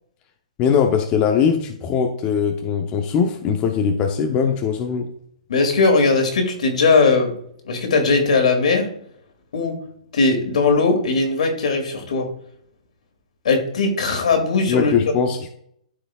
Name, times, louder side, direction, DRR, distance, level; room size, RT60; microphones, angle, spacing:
voice 1, 0.6-5.1 14.7-15.5, left 7 dB, 30° left, 3 dB, 0.8 m, -20 dB
voice 2, 5.5-7.3 7.6-8.9 9.5-9.8 10.1-12.3 13.4-14.9, left 4 dB, 75° left, 4 dB, 2.4 m, -19 dB
13.0 x 4.8 x 2.4 m, 0.67 s
hypercardioid pair, 145°, 4 cm